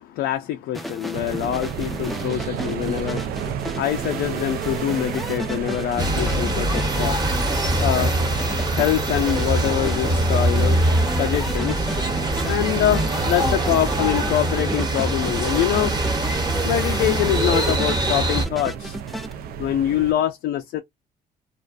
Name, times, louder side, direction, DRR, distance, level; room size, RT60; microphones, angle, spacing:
voice 1, 0.0-7.5 7.8-8.1 8.7-10.8 11.2-11.9 12.4-15.9 16.6-19.0 19.6-20.8, left 12 dB, 75° left, 0.4 m, -24 dB
sound 1, 0.7-19.3, equal, ahead, 0.4 m, -34 dB
sound 2, 1.1-20.1, right 8 dB, 65° right, 0.4 m, -33 dB
sound 3, 6.0-18.5, right 1 dB, 25° right, 1.0 m, -23 dB
2.4 x 2.3 x 2.4 m
cardioid pair, 110°, 17 cm